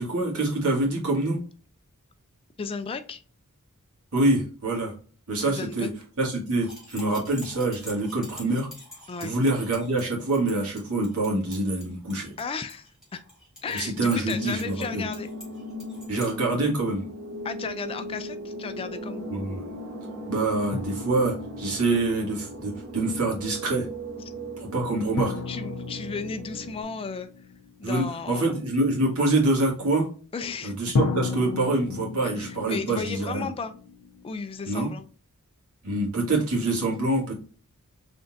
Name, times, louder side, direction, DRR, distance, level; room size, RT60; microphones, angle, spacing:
voice 1, 0.0-1.4 4.1-4.9 5.3-5.9 6.2-8.7 9.2-12.3 13.7-15.0 16.1-17.1 19.3-19.6 20.3-23.9 24.6-25.3 27.8-30.1 30.6-33.5 34.7-34.9 35.8-37.3, right 2 dB, 70° right, -2 dB, 1.8 m, -25 dB
voice 2, 2.6-3.2 5.4-5.9 9.1-9.3 12.4-13.2 13.6-15.3 17.4-19.3 24.3-24.4 25.5-27.3 27.8-28.4 30.3-31.0 32.2-33.7 34.2-35.0, left 5 dB, 25° left, 10 dB, 0.3 m, -34 dB
sound 1, 6.5-16.3, left 1 dB, 5° right, 1.8 m, -46 dB
sound 2, 14.4-26.8, equal, 50° right, 0.9 m, -38 dB
sound 3, 20.7-22.5 25.2-28.0 30.9-34.8, left 4 dB, 80° left, 0.5 m, -33 dB
3.9 x 3.3 x 2.4 m, 0.40 s
head